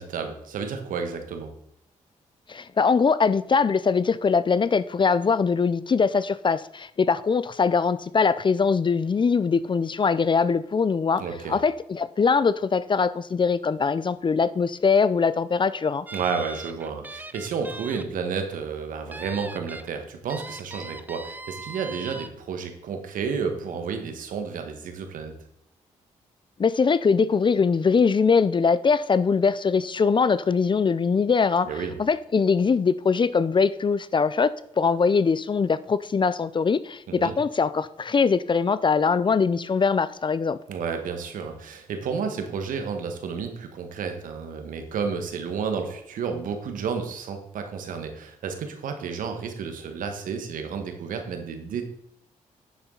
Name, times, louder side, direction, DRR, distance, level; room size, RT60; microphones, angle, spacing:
voice 1, 0.0-1.5 11.2-11.6 16.1-25.3 31.6-32.0 37.1-37.3 40.7-51.8, right 6 dB, 75° right, 5 dB, 1.5 m, -31 dB
voice 2, 2.5-11.2 11.5-16.1 26.6-31.7 32.0-40.6, left 5 dB, 35° left, 16 dB, 0.5 m, -22 dB
sound 1, 16.1-18.0 18.4-18.5 19.1-19.9 20.3-22.3, right 2 dB, 15° right, 0.7 m, -39 dB
9.5 x 7.0 x 3.9 m, 0.74 s
supercardioid pair, 55°, 14 cm